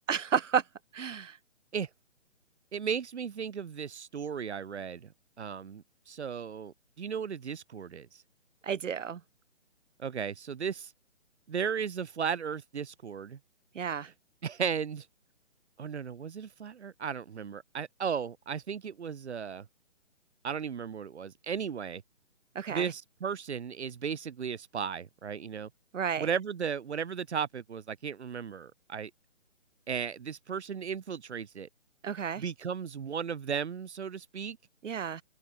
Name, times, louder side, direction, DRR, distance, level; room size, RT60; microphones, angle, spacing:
voice 1, 0.1-0.6 0.9-1.4 8.6-9.2 13.7-14.1 22.5-22.9 25.9-26.3 32.0-32.4 34.8-35.2, right 7 dB, 80° right, 0.7 m, -31 dB
voice 2, 2.7-5.1 5.4-8.2 10.0-10.9 11.5-13.4 14.0-14.1 14.4-15.1 15.8-19.7 20.4-22.0 22.7-25.7 26.2-29.1 29.9-31.7 32.4-34.6, right 7 dB, 60° right, 1.2 m, -35 dB
figure-of-eight pair, 145°, 37 cm